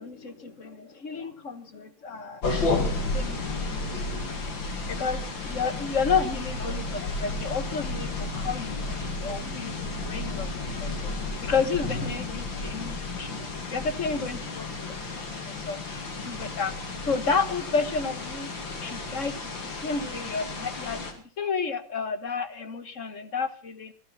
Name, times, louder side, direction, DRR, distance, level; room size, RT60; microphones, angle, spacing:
voice 1, 0.0-2.4 2.9-4.0 4.9-11.1 11.4-16.7 17.1-18.5 18.8-19.5 19.8-21.0 21.4-23.9, left 5 dB, 40° left, 10 dB, 1.5 m, -31 dB
sound 1, 2.4-21.1, left 3 dB, 65° left, 3.3 m, -32 dB
17.0 x 14.5 x 5.7 m, 0.41 s
omnidirectional pair, 2.2 m